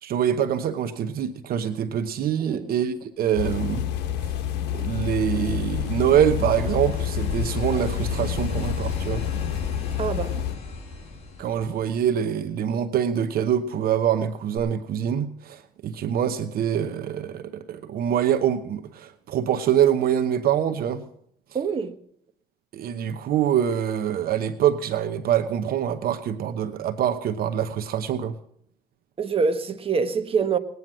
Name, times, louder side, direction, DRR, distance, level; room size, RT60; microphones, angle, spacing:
voice 1, 0.0-3.8 4.7-9.3 11.4-21.0 22.7-28.3, right 9 dB, 60° right, 1.0 m, -25 dB
sound 1, 3.4-10.5, left 10 dB, 85° left, 1.4 m, -28 dB
sound 2, 4.3-12.4 14.6-14.7, left 2 dB, 35° left, 6.0 m, -37 dB
voice 2, 10.0-10.3 21.5-21.9 29.2-30.6, right 5 dB, 35° right, 1.3 m, -25 dB
20.0 x 9.4 x 6.1 m
cardioid pair, 110°, 17 cm